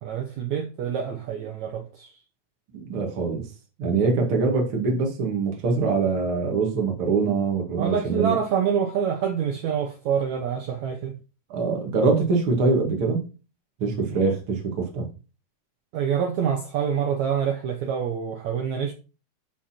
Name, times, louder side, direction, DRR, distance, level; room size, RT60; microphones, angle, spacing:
voice 1, 0.0-2.1 7.8-11.2 15.9-18.9, right 7 dB, 75° right, 1.7 m, -26 dB
voice 2, 2.7-3.5 3.8-8.4 11.5-13.2 13.8-15.1, right 4 dB, 40° right, 2.6 m, -23 dB
12.0 x 4.4 x 4.4 m
omnidirectional pair, 4.4 m